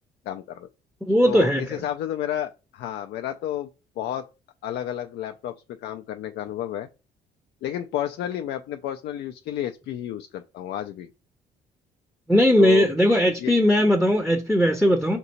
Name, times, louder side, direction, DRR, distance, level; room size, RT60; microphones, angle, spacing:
voice 1, 0.3-0.7 1.2-3.7 4.0-4.3 4.6-6.9 7.6-11.1 12.6-12.9 13.4-13.5, left 11 dB, 55° left, 0.4 m, -31 dB
voice 2, 1.0-1.6 12.3-15.2, equal, ahead, 0.6 m, -19 dB
5.2 x 2.7 x 2.9 m
hypercardioid pair, 50°, 21 cm